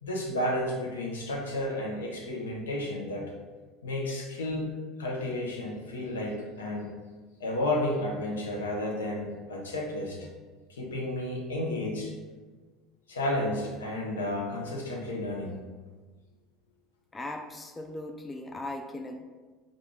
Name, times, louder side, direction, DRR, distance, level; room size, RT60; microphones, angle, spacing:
voice 1, 0.0-3.3 3.8-4.7 5.0-6.9 7.4-10.3 10.7-12.1 13.1-15.6, left 1 dB, 75° left, 0 dB, 0.7 m, -32 dB
voice 2, 17.1-19.2, left 1 dB, 20° left, 4 dB, 0.4 m, -38 dB
4.7 x 2.5 x 3.4 m, 1.4 s
figure-of-eight pair, 70°, 0 cm